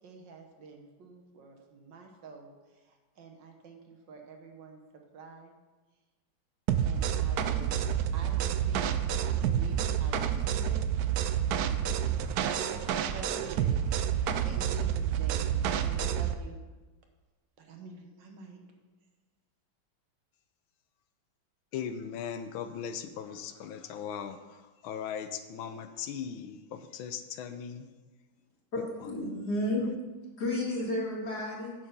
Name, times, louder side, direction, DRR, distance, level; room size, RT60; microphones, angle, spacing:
voice 1, 0.0-5.5 6.8-7.8 8.1-10.8 11.6-13.8 14.4-15.5 15.8-16.6 17.6-18.6, right 4 dB, 65° right, 3 dB, 1.7 m, -48 dB
sound 1, 6.7-16.4, right 9 dB, 85° right, 0.8 m, -29 dB
voice 2, 21.7-27.9 28.8-29.1, left 8 dB, 85° left, 9 dB, 1.4 m, -39 dB
voice 3, 28.7-29.9 30.4-31.7, left 1 dB, 55° left, -2 dB, 2.4 m, -32 dB
8.8 x 6.6 x 5.4 m, 1.2 s
omnidirectional pair, 2.2 m